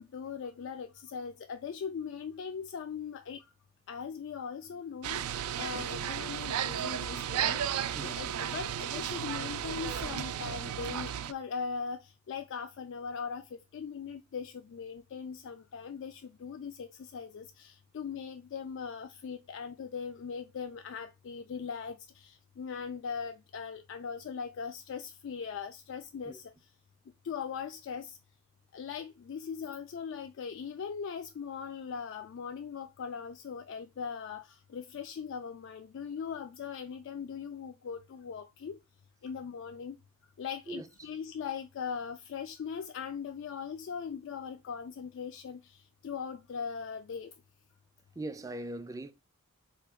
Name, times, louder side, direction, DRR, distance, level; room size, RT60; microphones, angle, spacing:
voice 1, 0.0-3.4 3.9-5.3 5.6-7.6 8.0-26.5 27.2-28.2 28.7-38.8 39.2-40.0 40.4-45.8 46.0-47.3, left 6 dB, 60° left, 0.3 m, -40 dB
sound 1, 5.0-11.3, right 9 dB, 85° right, 0.4 m, -34 dB
voice 2, 48.2-49.1, right 2 dB, 15° right, 0.4 m, -40 dB
3.6 x 2.9 x 4.8 m
head